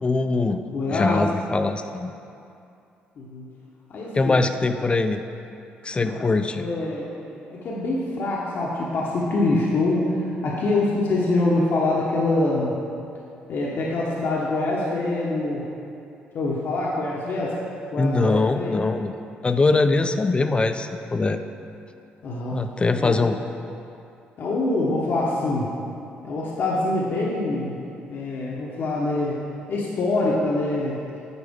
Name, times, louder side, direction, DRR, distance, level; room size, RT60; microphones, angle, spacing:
voice 1, 0.0-2.1 4.1-5.2 5.8-6.6 18.0-19.1 19.4-21.4 22.5-23.4, left 3 dB, 25° left, 8 dB, 0.4 m, -22 dB
voice 2, 0.6-1.3 3.2-3.4 3.9-4.4 6.0-6.3 6.5-12.7 13.5-15.7 16.3-17.6 17.9-18.8 22.2-22.6 23.0-23.2 24.4-25.7 26.2-27.8 28.1-29.4 29.7-31.0, left 2 dB, 60° left, -5 dB, 0.9 m, -25 dB
8.1 x 4.4 x 3.5 m, 2.6 s
supercardioid pair, 65°, 4 cm